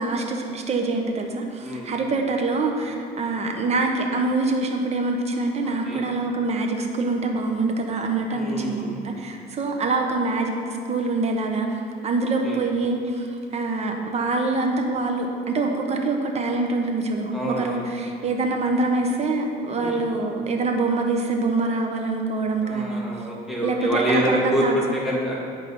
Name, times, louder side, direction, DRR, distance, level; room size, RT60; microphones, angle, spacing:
voice 1, 0.0-11.7 12.0-13.3 13.5-23.0 23.6-25.0, right 3 dB, 40° right, 3 dB, 1.0 m, -25 dB
voice 2, 8.3-9.1 12.4-12.6 17.3-17.9 19.8-20.0 22.6-25.4, right 1 dB, ahead, -6 dB, 2.1 m, -26 dB
8.8 x 5.0 x 5.5 m, 2.4 s
cardioid pair, 110°, 17 cm